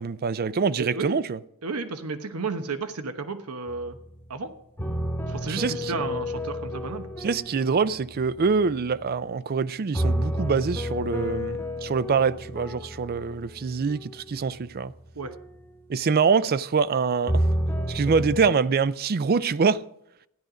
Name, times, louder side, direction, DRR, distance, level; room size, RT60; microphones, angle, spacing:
voice 1, 0.0-1.4 5.5-6.0 7.2-14.9 15.9-17.4 17.9-19.8, right 5 dB, 45° right, 0.4 m, -25 dB
voice 2, 0.8-1.2 1.6-4.0 4.3-4.5 5.3-7.1 15.1-15.3, right 4 dB, 90° right, 1.0 m, -32 dB
sound 1, 3.7-4.4 4.8-9.3 9.9-15.6 17.3-18.5, equal, 10° left, 1.1 m, -31 dB
13.5 x 10.5 x 5.0 m
head